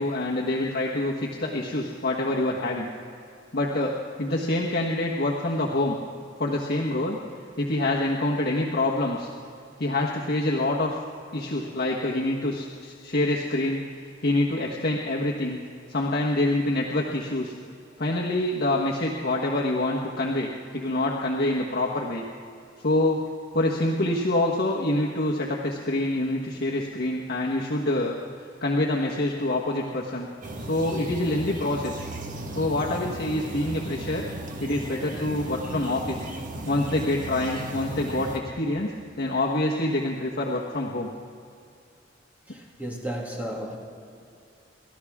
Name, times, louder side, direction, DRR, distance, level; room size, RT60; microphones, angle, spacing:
voice 1, 0.0-2.9 3.5-6.0 6.4-7.2 7.6-9.3 9.8-10.9 11.3-15.6 15.9-17.5 18.0-22.2 22.8-23.2 23.5-28.2 28.6-30.3 30.7-32.1 32.5-34.2 34.6-36.3 36.7-38.9 39.2-41.1, left 1 dB, 60° left, -3 dB, 1.4 m, -26 dB
sound 1, 30.4-38.4, right 1 dB, 45° right, 1.4 m, -36 dB
voice 2, 42.8-43.8, right 1 dB, 10° right, -2 dB, 2.4 m, -32 dB
29.5 x 13.5 x 3.6 m, 2.4 s
head